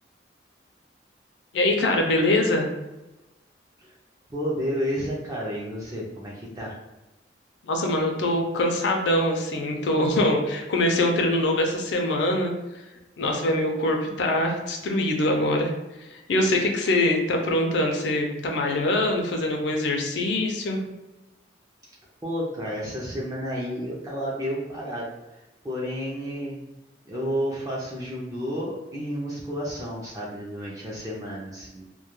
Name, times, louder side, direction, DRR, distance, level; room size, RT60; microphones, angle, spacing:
voice 1, 1.5-2.7 7.7-12.5 13.2-15.7 16.1-20.8, left 1 dB, 75° left, 2 dB, 0.4 m, -23 dB
voice 2, 4.3-6.8 22.2-25.1 25.6-26.6 27.1-31.8, equal, 20° right, -6 dB, 0.4 m, -31 dB
2.2 x 2.2 x 2.9 m, 1.0 s
head